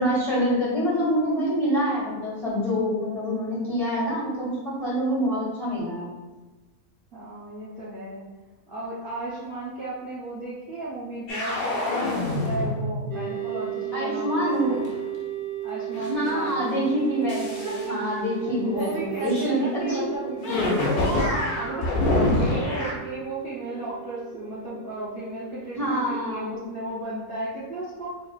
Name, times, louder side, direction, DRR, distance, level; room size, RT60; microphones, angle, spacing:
voice 1, 0.0-6.1 13.9-14.8 16.0-20.8 25.7-26.5, equal, 25° left, -7 dB, 1.5 m, -26 dB
voice 2, 7.1-8.2 8.7-14.8 15.6-16.7 17.6-18.0 18.6-20.3 21.2-28.2, right 1 dB, 50° right, -9 dB, 0.8 m, -34 dB
sound 1, 11.3-13.1 14.7-15.2 15.9-16.5 17.3-17.9 18.8-18.9 19.2-19.4 20.4-22.9, left 2 dB, 90° left, 1.4 m, -26 dB
sound 2, 13.1-27.0, right 13 dB, 75° right, 0.4 m, -36 dB
5.3 x 3.0 x 2.3 m, 1.2 s
omnidirectional pair, 1.5 m